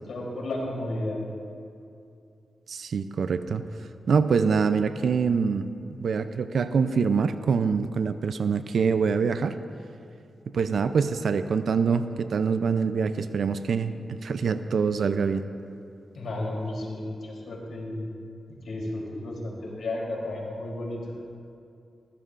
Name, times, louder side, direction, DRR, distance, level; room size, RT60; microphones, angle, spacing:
voice 1, 0.1-1.2 16.1-18.1 18.5-21.1, left 1 dB, 80° left, -2 dB, 3.4 m, -33 dB
voice 2, 2.7-3.6 4.1-5.7 6.0-9.5 10.5-15.4, right 5 dB, 75° right, 10 dB, 0.5 m, -25 dB
20.5 x 14.5 x 2.6 m, 2.5 s
cardioid pair, 70°, 0 cm